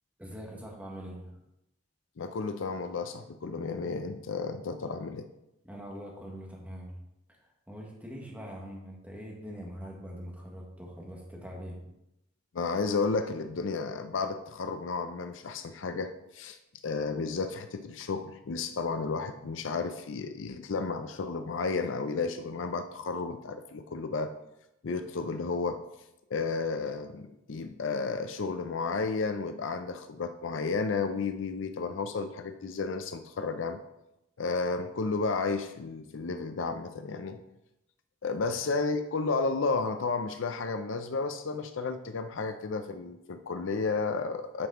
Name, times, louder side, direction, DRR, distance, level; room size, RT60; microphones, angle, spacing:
voice 1, 0.2-1.3 5.6-6.9 7.7-11.8, equal, 10° right, -2 dB, 1.5 m, -43 dB
voice 2, 2.2-5.3 12.5-16.6 16.8-24.3 24.8-25.8 26.3-33.8 34.4-37.4 38.2-44.7, left 4 dB, 80° left, 8 dB, 0.5 m, -32 dB
8.5 x 5.3 x 3.7 m, 0.86 s
head